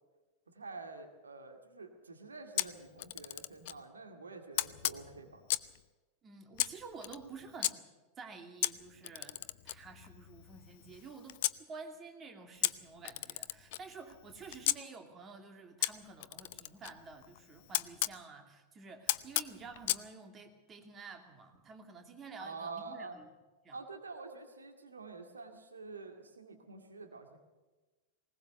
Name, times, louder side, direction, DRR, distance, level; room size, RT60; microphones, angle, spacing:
voice 1, 0.5-5.4 22.4-23.2 23.7-27.4, right 3 dB, 75° right, 5 dB, 2.1 m, -47 dB
Camera, 2.6-3.8 4.6-5.8 6.6-7.7 8.6-11.6 12.6-14.8 15.8-18.2 19.1-20.1, left 16 dB, 50° left, 0.6 m, -36 dB
voice 2, 6.2-7.8 8.2-9.4 9.6-23.3 23.6-23.8, right 4 dB, 25° right, 5 dB, 2.6 m, -50 dB
20.0 x 19.5 x 6.8 m, 1.2 s
figure-of-eight pair, 90°, 0 cm